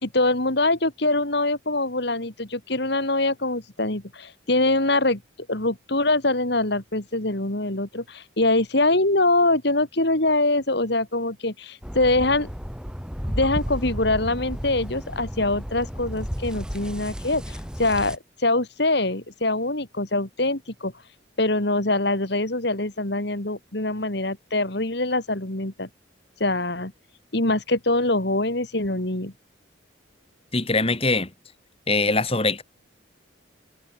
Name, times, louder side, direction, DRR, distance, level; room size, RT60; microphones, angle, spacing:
voice 1, 0.0-5.2 5.5-12.5 13.3-20.9 21.4-25.9 26.4-26.9 27.3-29.3, left 2 dB, 55° left, 2.7 m, -24 dB
sound 1, 11.8-18.2, equal, 5° right, 2.9 m, -33 dB
voice 2, 30.5-31.3 31.9-32.6, left 3 dB, 30° left, 3.3 m, -22 dB
head